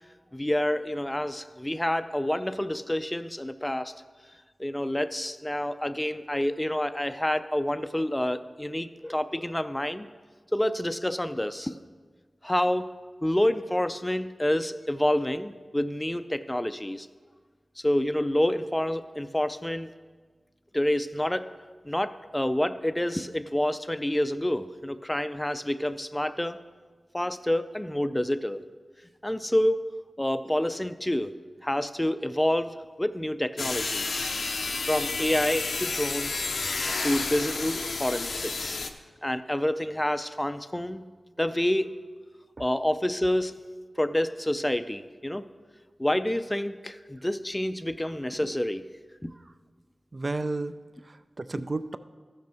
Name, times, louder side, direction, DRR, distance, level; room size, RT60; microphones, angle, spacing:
voice 1, 0.3-3.9 4.6-10.1 10.5-11.7 12.4-12.9 13.2-17.1 17.8-19.9 20.7-21.5 21.9-26.6 27.1-28.6 29.2-29.9 30.2-31.3 31.6-34.3 34.9-36.4 37.0-38.8 39.2-41.1 41.4-41.9 42.6-43.5 44.0-45.4 46.0-48.9 49.2-49.3, left 1 dB, 15° left, 11 dB, 0.4 m, -28 dB
sound 1, 33.6-38.9, left 3 dB, 80° left, 0.6 m, -31 dB
voice 2, 50.1-50.7 51.0-52.0, right 3 dB, 45° right, 12 dB, 0.4 m, -33 dB
14.0 x 6.1 x 4.3 m, 1.5 s
wide cardioid pair, 55°, 0 cm